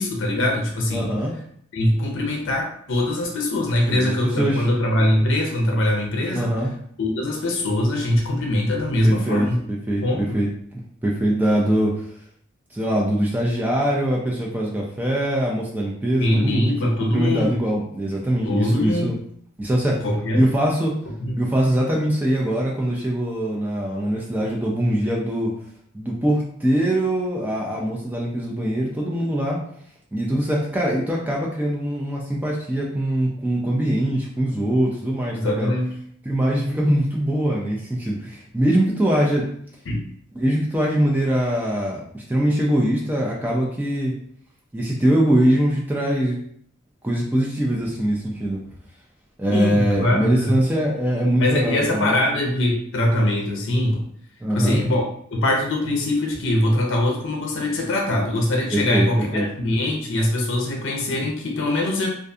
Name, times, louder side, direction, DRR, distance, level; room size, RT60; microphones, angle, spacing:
voice 1, 0.0-1.1 1.7-6.6 7.0-9.6 10.0-10.4 16.2-17.6 18.4-19.2 20.0-20.5 21.2-21.4 35.3-35.9 39.9-40.0 49.5-50.6 51.4-54.1 54.5-55.0 55.3-62.1, left 1 dB, 65° left, 0 dB, 0.5 m, -22 dB
voice 2, 0.9-1.3 3.9-4.7 6.3-6.7 9.0-10.5 10.7-12.0 12.7-16.7 17.1-19.2 19.6-20.0 20.3-21.0 21.4-25.5 25.9-29.6 30.1-35.7 36.3-39.5 40.3-44.2 44.7-46.4 47.0-48.6 49.4-52.2 54.4-54.8 58.7-59.1 59.3-59.5, right 1 dB, 10° right, -3 dB, 0.3 m, -22 dB
2.6 x 2.4 x 2.3 m, 0.65 s
head